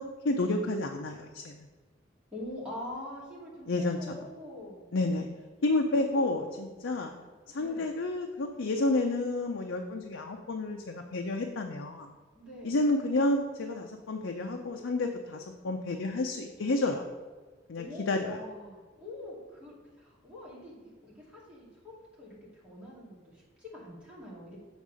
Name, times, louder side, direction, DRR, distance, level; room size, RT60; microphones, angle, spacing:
voice 1, 0.2-1.6 3.7-4.2 4.9-5.3 5.6-7.1 7.5-12.1 12.6-17.0 17.7-18.4, left 2 dB, 75° left, 3 dB, 0.6 m, -30 dB
voice 2, 2.3-4.8 6.1-6.4 6.7-7.3 7.6-7.9 12.3-12.8 17.8-22.4 22.6-24.7, left 1 dB, 5° right, -7 dB, 2.2 m, -45 dB
7.2 x 3.6 x 6.2 m, 1.4 s
head